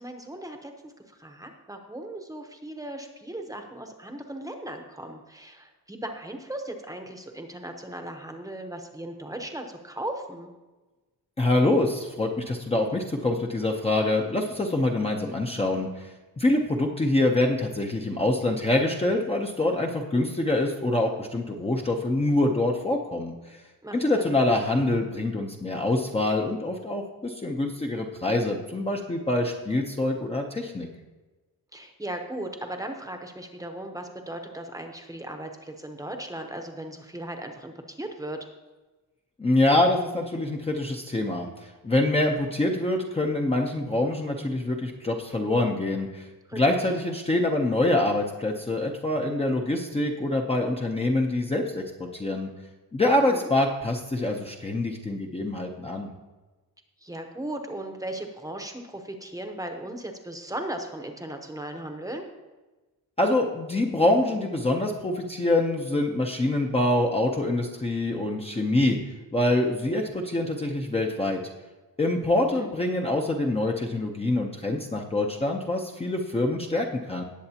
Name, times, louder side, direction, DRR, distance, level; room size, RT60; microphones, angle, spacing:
voice 1, 0.0-10.5 23.8-24.4 31.7-38.4 46.5-46.6 53.3-53.5 57.0-62.2 72.3-72.7, right 1 dB, 10° right, 4 dB, 0.9 m, -37 dB
voice 2, 11.4-16.1 16.4-23.6 23.9-30.9 39.4-52.5 52.9-56.1 63.2-69.0 69.3-71.4 72.0-77.2, left 2 dB, 15° left, 0 dB, 0.7 m, -25 dB
18.5 x 7.9 x 2.9 m, 1.2 s
wide cardioid pair, 180°, 37 cm